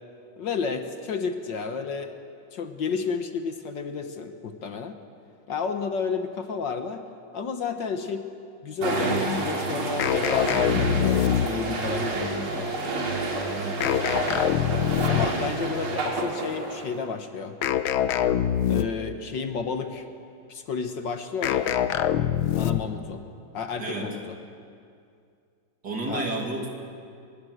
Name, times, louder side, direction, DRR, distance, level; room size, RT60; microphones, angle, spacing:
voice 1, 0.4-2.1 2.5-5.0 5.5-7.0 7.3-8.3 8.6-12.8 13.8-14.0 15.0-17.5 18.7-20.1 20.5-21.7 22.6-23.2 23.5-24.4 26.1-26.3, left 5 dB, 60° left, 7 dB, 1.8 m, -31 dB
sound 1, 8.8-17.0, right 2 dB, 80° right, 3.7 m, -29 dB
sound 2, 10.0-11.8 13.8-15.5 17.6-19.1 21.4-23.0, left 10 dB, 80° left, 1.6 m, -24 dB
voice 2, 13.5-13.9 23.8-24.2 25.8-26.7, right 2 dB, 50° right, 1 dB, 3.3 m, -31 dB
24.0 x 21.5 x 8.0 m, 2.4 s
omnidirectional pair, 2.3 m